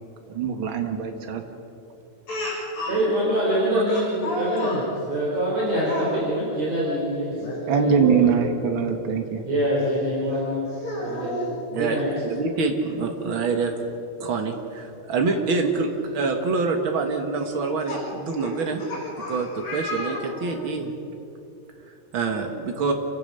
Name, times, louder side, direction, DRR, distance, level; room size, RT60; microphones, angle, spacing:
voice 1, 0.3-1.4 7.7-9.4, right 6 dB, 65° right, 5 dB, 1.2 m, -22 dB
Speech, 2.3-3.0 3.9-4.8 5.8-6.1 7.3-7.6 8.0-8.1 9.8-9.9 10.7-11.6 12.9-13.0 13.3-13.4 15.3-15.4 16.0-16.3 17.4-20.7, left 1 dB, 40° left, 8.3 m, -32 dB
voice 2, 2.9-7.4 7.7-8.3 9.5-10.7 11.0-11.4 11.7-12.1, equal, 45° right, -5 dB, 5.1 m, -25 dB
voice 3, 11.7-13.7 14.2-18.8 19.3-21.0 21.9-22.9, right 4 dB, 85° right, 4 dB, 1.1 m, -26 dB
29.0 x 16.0 x 6.8 m, 2.8 s
omnidirectional pair, 4.6 m